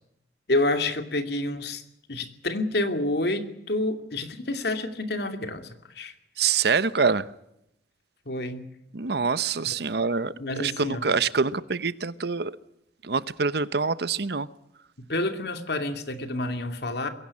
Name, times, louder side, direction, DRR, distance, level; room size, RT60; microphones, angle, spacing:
voice 1, 0.5-1.8 2.1-5.7 6.0-6.1 8.3-8.6 9.7-9.8 10.4-11.1 15.1-17.1, left 2 dB, 65° left, 2.6 m, -28 dB
voice 2, 6.4-7.3 8.9-12.5 13.0-14.5, right 5 dB, 65° right, 0.9 m, -25 dB
22.0 x 17.0 x 9.9 m
head